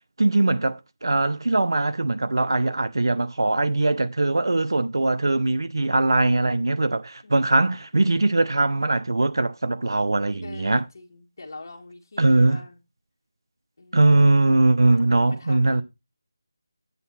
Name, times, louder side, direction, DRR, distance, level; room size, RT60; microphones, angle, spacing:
voice 1, 0.2-10.8 12.2-12.6 13.9-15.8, right 2 dB, 80° right, 0.8 m, -21 dB
voice 2, 7.2-7.7 10.4-12.8 13.8-14.2 14.9-15.8, left 3 dB, 55° left, 1.6 m, -45 dB
8.3 x 4.5 x 5.7 m
figure-of-eight pair, 170°, 2 cm